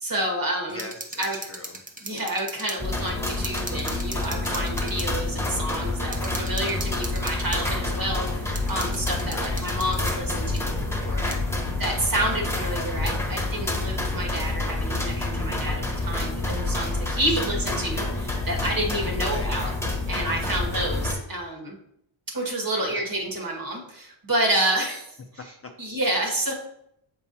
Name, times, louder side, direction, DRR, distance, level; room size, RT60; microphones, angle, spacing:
voice 1, 0.0-0.9 1.2-1.4 2.0-11.4 11.8-19.7 20.1-21.8 22.3-25.1 25.8-26.5, right 1 dB, 40° right, 0 dB, 1.9 m, -29 dB
voice 2, 0.7-1.8 9.3-9.7 17.1-17.5 19.1-19.5 22.8-23.0 25.6-25.7, left 3 dB, 30° left, 3 dB, 0.6 m, -41 dB
sound 1, 0.7-2.8 3.1-3.2 3.4-5.1 5.7-5.8 6.1-7.7 8.6-10.2 10.6-10.7 11.3-11.4, right 2 dB, 15° right, 0.8 m, -38 dB
sound 2, 2.8-21.1, left 2 dB, 5° left, 1.3 m, -28 dB
7.1 x 4.8 x 2.8 m, 0.74 s
cardioid pair, 100°, 50 cm